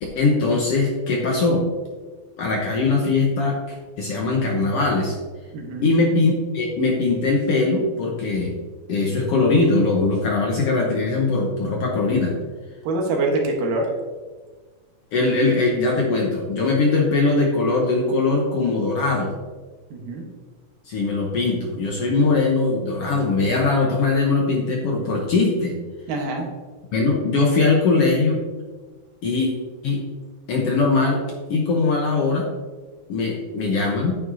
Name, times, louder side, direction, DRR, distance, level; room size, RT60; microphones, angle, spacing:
voice 1, 0.0-1.6 2.4-5.1 5.8-8.5 8.9-12.3 15.1-19.4 20.9-25.7 26.9-28.4 29.2-29.5 29.8-30.0 30.5-31.2 31.5-32.5 33.1-34.1, left 3 dB, 65° left, -1 dB, 1.6 m, -21 dB
voice 2, 5.5-5.9 12.8-13.9 19.9-20.3 26.1-26.5, right 2 dB, 85° right, 1 dB, 2.9 m, -24 dB
9.2 x 9.0 x 2.7 m, 1.4 s
omnidirectional pair, 3.7 m